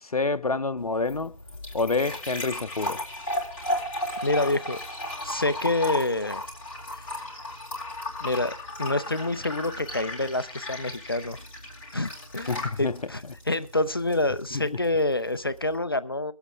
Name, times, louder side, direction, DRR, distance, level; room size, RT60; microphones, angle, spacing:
voice 1, 0.0-1.4 1.7-3.0 12.5-13.0 14.5-14.8, left 3 dB, 75° left, 0.7 m, -28 dB
sound 1, 0.8-15.7, left 1 dB, 20° left, 2.7 m, -35 dB
voice 2, 4.2-4.8 5.2-6.4 8.2-11.4 11.9-16.3, left 2 dB, 40° left, 0.5 m, -27 dB
23.5 x 8.0 x 3.5 m
figure-of-eight pair, 165°, 19 cm